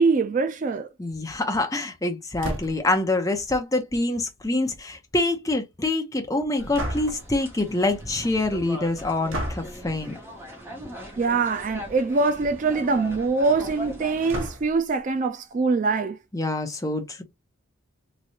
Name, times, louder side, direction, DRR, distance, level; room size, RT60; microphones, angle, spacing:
voice 1, 0.0-0.9 11.2-16.2, right 4 dB, 35° right, 0.3 m, -23 dB
voice 2, 1.0-10.1 16.3-17.2, left 2 dB, 15° left, 0.7 m, -26 dB
sound 1, 2.4-3.0 6.7-7.3 9.3-9.7 11.0-11.2 11.6-11.7 11.9-12.0 14.3-14.9, right 1 dB, 75° right, 1.0 m, -32 dB
sound 2, 6.6-14.4, equal, 10° right, 1.0 m, -40 dB
3.3 x 3.1 x 2.7 m
head